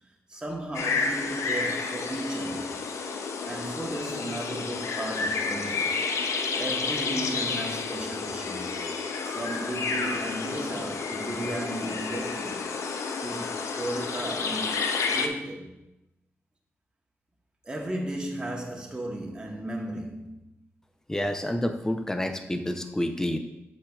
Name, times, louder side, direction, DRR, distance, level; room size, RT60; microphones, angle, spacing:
voice 1, 0.3-2.8 3.4-5.9 6.5-8.8 9.2-12.7 13.2-14.8 15.1-15.8 17.6-20.4, right 1 dB, 20° right, 1.0 m, -35 dB
sound 1, 0.7-15.3, left 4 dB, 85° left, 0.5 m, -30 dB
voice 2, 21.1-23.4, left 1 dB, 10° left, 0.5 m, -28 dB
7.6 x 6.2 x 2.3 m
wide cardioid pair, 115°, 5 cm